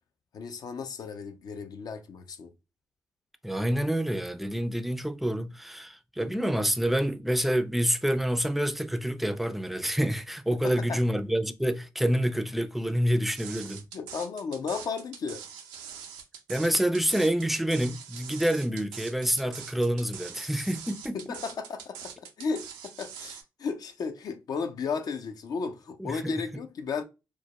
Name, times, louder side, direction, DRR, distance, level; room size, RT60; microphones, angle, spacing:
voice 1, 0.3-2.5 10.6-11.0 13.9-15.4 21.1-27.0, left 5 dB, 60° left, 0.5 m, -34 dB
voice 2, 3.4-13.8 16.5-21.2 26.0-26.4, equal, ahead, 0.4 m, -27 dB
sound 1, 13.4-23.4, right 8 dB, 90° right, 0.4 m, -43 dB
2.2 x 2.1 x 2.8 m
supercardioid pair, 55°, 8 cm